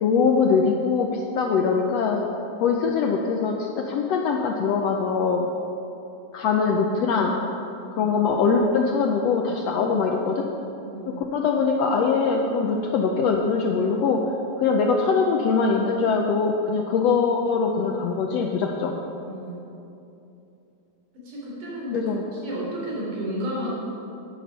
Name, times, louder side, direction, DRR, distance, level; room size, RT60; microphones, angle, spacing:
voice 1, 0.0-2.2 2.6-5.5 6.3-7.4 7.9-10.5 11.1-14.3 14.6-19.0 21.9-22.2, left 5 dB, 75° left, 2 dB, 1.5 m, -22 dB
voice 2, 7.7-8.1 10.8-11.2 19.2-19.7 21.1-23.7, right 1 dB, 80° right, -5 dB, 4.8 m, -33 dB
11.5 x 11.0 x 5.7 m, 2.8 s
omnidirectional pair, 3.6 m